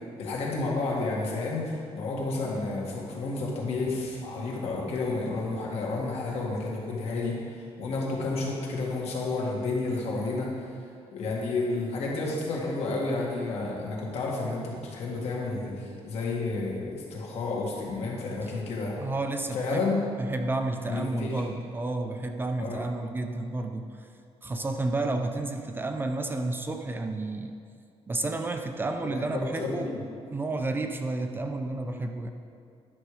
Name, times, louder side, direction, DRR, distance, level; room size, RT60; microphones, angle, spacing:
voice 1, 0.0-10.5 11.1-19.0 19.5-20.0 20.9-21.5 22.6-22.8 29.1-30.0, left 3 dB, 75° left, -3 dB, 2.0 m, -31 dB
voice 2, 19.0-19.9 20.2-23.9 24.4-27.5 28.1-30.0 30.3-32.3, right 2 dB, 20° right, 5 dB, 0.5 m, -31 dB
10.5 x 6.4 x 4.9 m, 2.4 s
cardioid pair, 165°, 11 cm